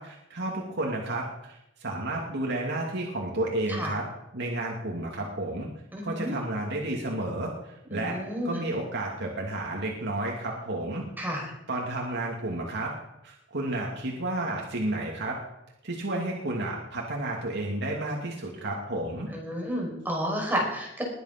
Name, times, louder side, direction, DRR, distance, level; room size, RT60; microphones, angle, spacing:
voice 1, 0.0-4.0 4.3-5.7 6.0-8.2 8.4-11.0 11.7-12.9 13.2-15.4 15.8-19.3, right 1 dB, 60° right, -1 dB, 2.6 m, -31 dB
voice 2, 5.9-6.3 7.9-8.6 11.2-11.5 19.3-21.0, equal, 10° right, -1 dB, 5.6 m, -31 dB
21.5 x 8.3 x 6.0 m, 0.85 s
head